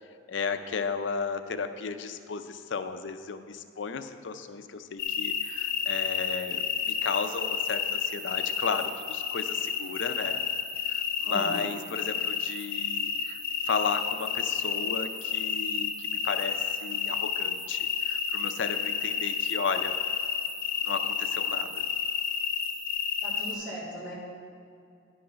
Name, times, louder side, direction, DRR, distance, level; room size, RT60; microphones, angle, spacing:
voice 1, 0.3-10.4 10.8-13.4 13.7-20.0 20.8-21.9, left 5 dB, 70° left, 9 dB, 0.5 m, -34 dB
sound 1, 5.0-23.5, left 7 dB, 50° left, 0.9 m, -31 dB
voice 2, 11.3-11.6 23.2-24.1, equal, 25° right, -8 dB, 2.5 m, -38 dB
10.5 x 5.4 x 5.7 m, 2.3 s
head